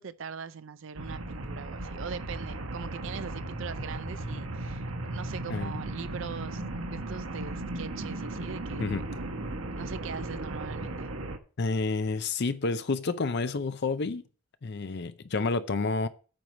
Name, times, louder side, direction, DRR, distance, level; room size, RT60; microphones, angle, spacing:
voice 1, 0.0-4.8 5.1-6.6 6.9-9.0 9.8-11.1, right 6 dB, 60° right, 0.5 m, -41 dB
sound 1, 1.0-11.4, right 2 dB, 80° right, 1.2 m, -36 dB
voice 2, 11.6-14.2 14.6-16.1, left 3 dB, 50° left, 0.5 m, -29 dB
8.8 x 4.7 x 7.1 m
head